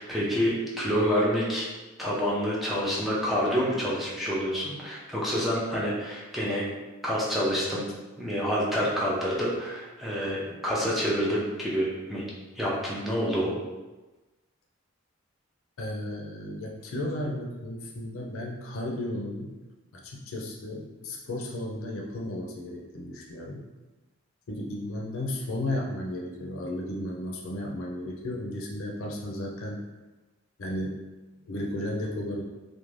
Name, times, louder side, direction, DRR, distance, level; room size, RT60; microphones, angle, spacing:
voice 1, 0.0-1.7 2.0-6.7 7.0-7.9 8.2-12.3 12.6-13.5, equal, ahead, -7 dB, 0.5 m, -27 dB
voice 2, 15.8-19.5 19.9-23.6 24.5-29.8 30.6-31.0 31.5-32.4, left 1 dB, 70° left, -1 dB, 0.5 m, -34 dB
2.5 x 2.1 x 3.1 m, 1.1 s
head